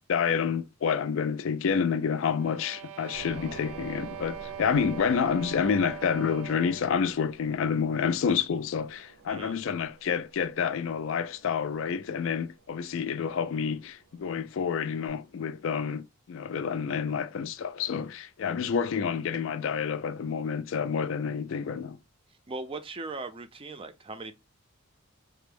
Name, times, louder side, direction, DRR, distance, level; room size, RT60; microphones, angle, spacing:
voice 1, 0.1-22.0, left 6 dB, 60° left, 0.3 m, -29 dB
sound 1, 2.2-7.0, right 9 dB, 90° right, 0.4 m, -42 dB
sound 2, 3.1-15.1, right 4 dB, 70° right, 0.8 m, -50 dB
voice 2, 22.5-24.3, right 3 dB, 25° right, 0.4 m, -38 dB
3.4 x 2.0 x 3.4 m
head